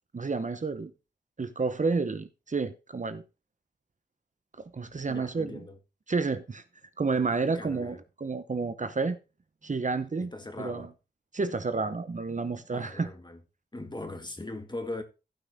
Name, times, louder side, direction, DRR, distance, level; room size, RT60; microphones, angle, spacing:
voice 1, 0.1-0.9 1.4-3.2 4.7-5.6 6.1-6.6 7.0-9.2 9.6-10.3 10.6-10.9 11.3-13.1, right 4 dB, 45° right, 0.8 m, -30 dB
voice 2, 5.1-5.8 7.5-8.0 10.2-10.9 12.7-13.4 13.7-15.0, left 2 dB, 25° left, 1.7 m, -40 dB
15.5 x 5.9 x 3.5 m
wide cardioid pair, 80°, 17 cm